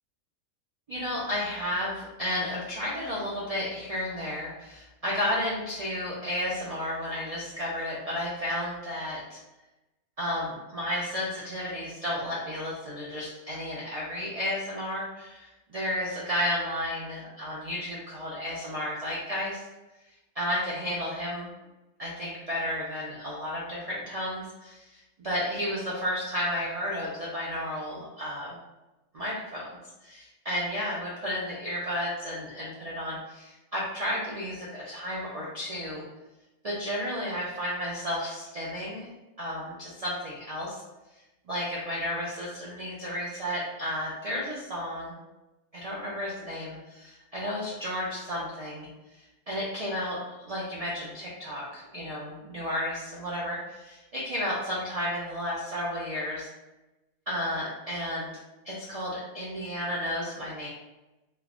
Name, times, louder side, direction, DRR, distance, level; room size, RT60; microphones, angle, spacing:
voice 1, 0.9-9.4 10.2-19.6 20.3-21.5 22.0-28.6 29.1-29.7 30.0-36.0 36.6-39.1 39.4-40.8 41.5-45.1 45.7-56.5 57.3-58.3 58.6-60.7, left 1 dB, 65° right, -6 dB, 0.3 m, -32 dB
3.1 x 2.0 x 2.4 m, 1.0 s
omnidirectional pair, 1.3 m